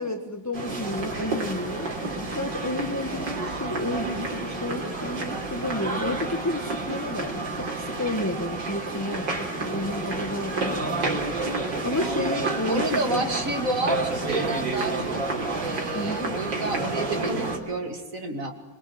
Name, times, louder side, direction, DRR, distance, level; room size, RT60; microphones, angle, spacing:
voice 1, 0.0-1.9 2.3-11.2 11.8-13.2 15.9-16.4, left 2 dB, 10° left, 6 dB, 1.3 m, -31 dB
sound 1, 0.5-17.6, right 3 dB, 75° right, 4.3 m, -30 dB
voice 2, 12.7-15.2 15.6-18.5, right 2 dB, 45° right, 5 dB, 3.3 m, -30 dB
25.5 x 23.5 x 7.6 m, 1.1 s
omnidirectional pair, 2.0 m